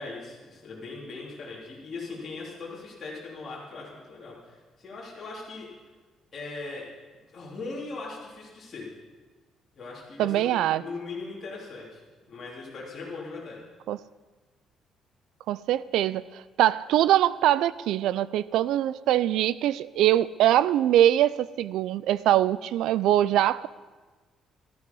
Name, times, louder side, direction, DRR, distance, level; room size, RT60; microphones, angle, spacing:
voice 1, 0.0-5.7 6.3-6.9 7.3-8.9 9.8-12.0 12.3-13.6, left 3 dB, 25° left, -7 dB, 3.2 m, -39 dB
voice 2, 10.2-10.8 13.9-14.0 15.5-23.7, right 12 dB, 70° right, 18 dB, 0.4 m, -23 dB
14.0 x 13.0 x 5.5 m, 1.3 s
cardioid pair, 180°, 0 cm